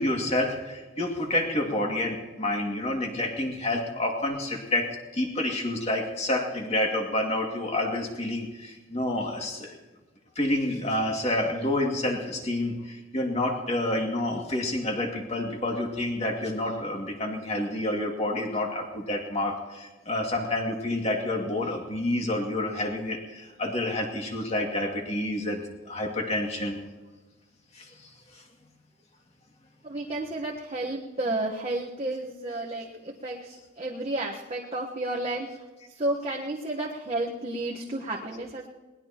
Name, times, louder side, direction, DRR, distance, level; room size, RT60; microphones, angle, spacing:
voice 1, 0.0-9.7 10.4-26.8 27.7-28.1, left 1 dB, 30° left, 1 dB, 2.3 m, -29 dB
voice 2, 29.8-35.5 35.9-38.7, right 2 dB, 30° right, -3 dB, 1.3 m, -32 dB
21.0 x 19.5 x 3.0 m, 1.2 s
head